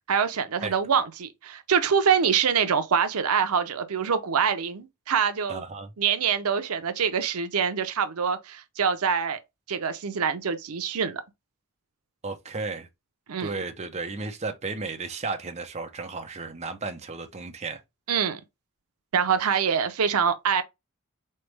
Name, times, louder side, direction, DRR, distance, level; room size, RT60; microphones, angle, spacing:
voice 1, 0.1-5.6 6.0-9.4 9.7-11.2 13.3-13.5 18.1-18.4 19.1-20.6, right 7 dB, 80° right, 0.6 m, -25 dB
voice 2, 5.5-5.9 12.2-12.9 13.4-17.8, right 3 dB, 30° right, 0.6 m, -34 dB
3.9 x 3.3 x 3.2 m
head